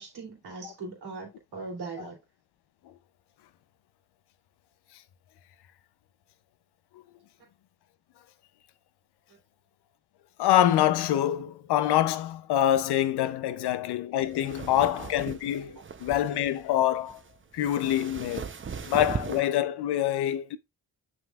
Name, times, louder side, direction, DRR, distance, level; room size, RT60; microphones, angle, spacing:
voice 1, 0.0-2.2 13.6-13.7 14.7-14.8 15.7-15.8, right 3 dB, 80° right, 2.9 m, -40 dB
voice 2, 10.4-15.7 16.0-17.2 17.5-18.5 18.9-20.6, left 12 dB, 85° left, 0.7 m, -25 dB
sound 1, 14.2-19.4, right 6 dB, 30° right, 0.7 m, -38 dB
7.2 x 6.1 x 2.4 m
supercardioid pair, 55°, 38 cm